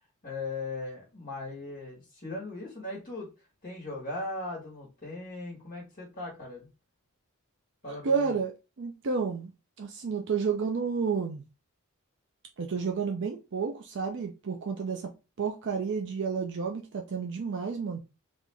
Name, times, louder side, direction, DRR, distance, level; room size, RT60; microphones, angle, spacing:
voice 1, 0.2-3.3 3.6-6.7 7.8-8.3, left 2 dB, 40° left, 1.5 m, -38 dB
voice 2, 8.0-8.5 8.8-9.5 9.8-11.4 12.6-15.1 15.4-18.0, right 5 dB, 55° right, 0.5 m, -30 dB
3.6 x 2.5 x 3.2 m
head